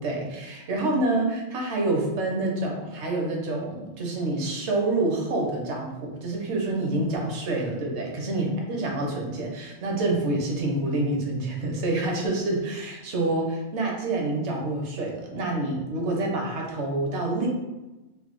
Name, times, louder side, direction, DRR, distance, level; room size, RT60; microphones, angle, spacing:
voice 1, 0.0-17.5, right 2 dB, 65° right, 0 dB, 0.9 m, -27 dB
3.2 x 2.2 x 2.9 m, 1.1 s
omnidirectional pair, 1.3 m